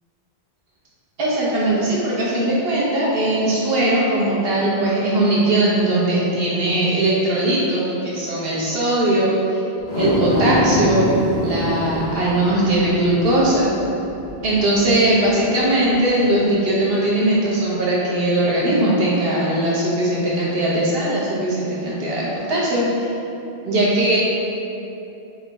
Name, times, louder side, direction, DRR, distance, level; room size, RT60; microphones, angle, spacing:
voice 1, 1.2-9.6 9.9-11.1 11.4-13.7 14.4-23.1 23.6-24.2, right 1 dB, 70° right, -6 dB, 1.1 m, -19 dB
sound 1, 9.8-16.3 16.7-16.8, left 1 dB, 80° left, 1.0 m, -26 dB
3.7 x 3.0 x 3.3 m, 2.8 s
omnidirectional pair, 1.1 m